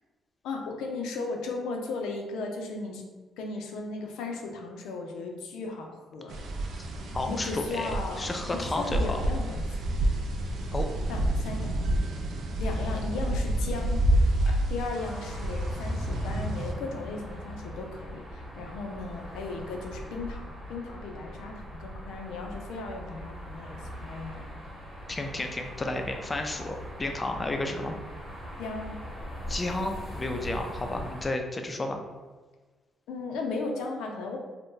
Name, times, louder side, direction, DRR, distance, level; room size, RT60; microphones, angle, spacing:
voice 1, 0.4-3.0 3.4-6.4 7.3-9.8 11.1-11.7 12.6-24.6 28.6-29.0 33.1-34.4, left 3 dB, 90° left, 2 dB, 0.5 m, -36 dB
sound 1, 6.3-16.7, right 1 dB, 70° right, 0.4 m, -29 dB
voice 2, 7.1-7.9 8.2-9.2 10.7-10.9 25.1-28.0 29.5-32.0, left 2 dB, 25° left, 4 dB, 0.4 m, -32 dB
sound 2, 15.0-31.3, equal, 10° right, 1.0 m, -41 dB
2.6 x 2.1 x 3.7 m, 1.3 s
cardioid pair, 90°, 0 cm